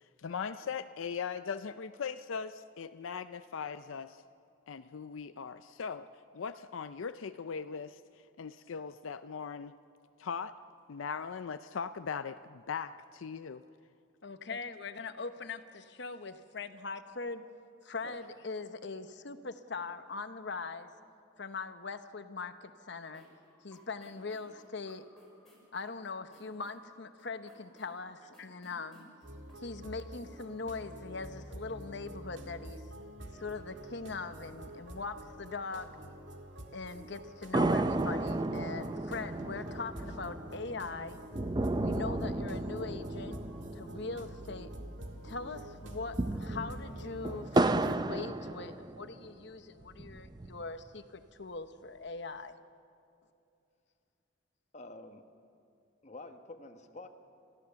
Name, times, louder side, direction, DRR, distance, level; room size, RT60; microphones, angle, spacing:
voice 1, 0.0-4.2 4.7-6.1 6.3-8.0 8.4-9.7 10.2-10.5 10.9-13.6 14.5-14.6, left 6 dB, 85° left, 11 dB, 0.5 m, -39 dB
voice 2, 14.2-17.4 17.8-20.9 21.4-23.2 23.6-25.0 25.7-29.1 29.6-32.8 33.3-35.9 36.7-41.2 41.8-43.4 43.7-44.7 45.2-52.6, left 4 dB, 60° left, 9 dB, 1.0 m, -41 dB
sound 1, 23.0-29.5, equal, ahead, 6.1 m, -61 dB
sound 2, 29.2-48.0, equal, 65° right, 1.9 m, -48 dB
sound 3, 37.5-45.1 45.4-45.5 45.9-49.3 49.8-50.8, right 2 dB, 20° right, 0.5 m, -33 dB
voice 3, 54.7-55.3 56.0-57.1, left 2 dB, 35° left, 6 dB, 1.3 m, -48 dB
29.5 x 14.5 x 6.9 m, 2.6 s
head